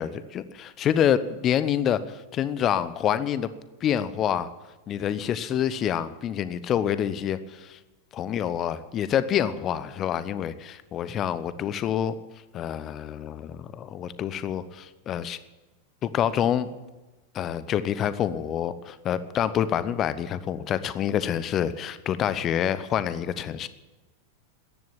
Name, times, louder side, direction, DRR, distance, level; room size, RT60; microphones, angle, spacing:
voice 1, 0.0-3.5 3.8-4.5 4.9-7.8 8.1-12.2 12.5-15.4 16.0-16.7 17.3-23.7, left 9 dB, 30° left, 15 dB, 0.9 m, -27 dB
14.0 x 11.0 x 9.0 m, 1.1 s
figure-of-eight pair, 90°, 0 cm